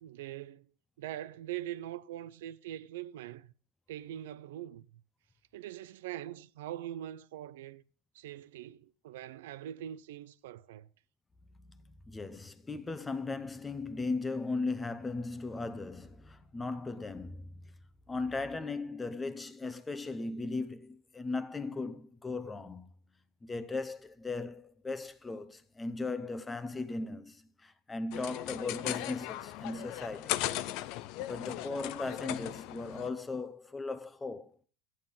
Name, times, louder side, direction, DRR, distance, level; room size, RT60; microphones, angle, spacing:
voice 1, 0.0-0.7 1.0-3.5 3.9-4.9 5.5-7.8 8.1-10.9, right 12 dB, 90° right, 0.6 m, -42 dB
voice 2, 12.1-17.7 18.1-22.9 23.4-30.4 31.2-34.5, left 3 dB, 10° left, 0.8 m, -37 dB
sound 1, 28.1-33.1, left 15 dB, 55° left, 0.6 m, -37 dB
13.0 x 9.1 x 5.4 m
supercardioid pair, 145°, 0 cm